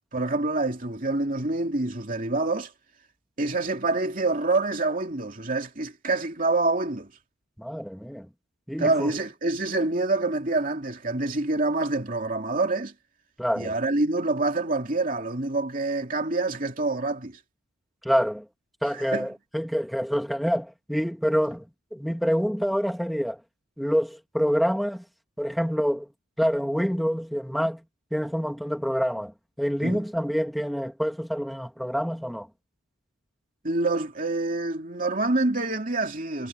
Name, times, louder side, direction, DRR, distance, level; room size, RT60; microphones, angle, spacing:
voice 1, 0.1-2.7 3.4-7.1 8.8-12.9 13.6-17.4 18.9-19.3 29.8-30.0 33.6-36.5, right 2 dB, 40° right, 2.8 m, -26 dB
voice 2, 7.6-8.3 8.7-9.1 13.4-13.7 18.0-18.4 18.8-23.4 23.8-25.0 25.4-26.1 26.4-27.8 28.1-29.3 29.6-32.5, equal, ahead, 2.8 m, -27 dB
head